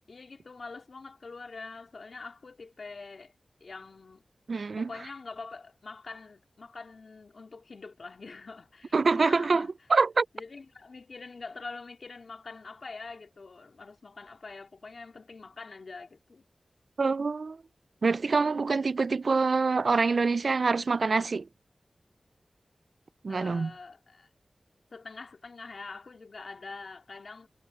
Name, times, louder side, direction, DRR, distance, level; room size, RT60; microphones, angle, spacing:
voice 1, 0.1-3.3 3.6-4.2 4.8-9.7 10.3-16.4 23.3-24.3 24.9-27.5, left 4 dB, 70° left, 3.0 m, -45 dB
voice 2, 4.5-4.9 8.9-10.3 17.0-17.6 18.0-21.5 23.2-23.7, right 4 dB, 70° right, 0.3 m, -25 dB
wide cardioid pair, 85°, 0 cm